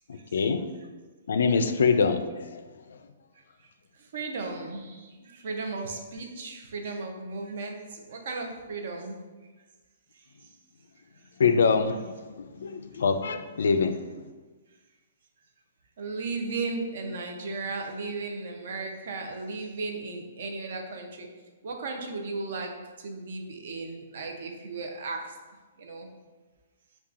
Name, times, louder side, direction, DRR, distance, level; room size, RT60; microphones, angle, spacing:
voice 1, 0.1-0.6 1.3-2.2 2.5-2.6 11.4-14.0, left 5 dB, 75° left, 8 dB, 0.3 m, -24 dB
voice 2, 4.1-9.2 16.0-21.3 21.6-22.7 23.0-25.3 25.8-26.1, right 3 dB, 60° right, 3 dB, 0.6 m, -35 dB
5.4 x 2.3 x 2.4 m, 1.3 s
hypercardioid pair, 160°, 0 cm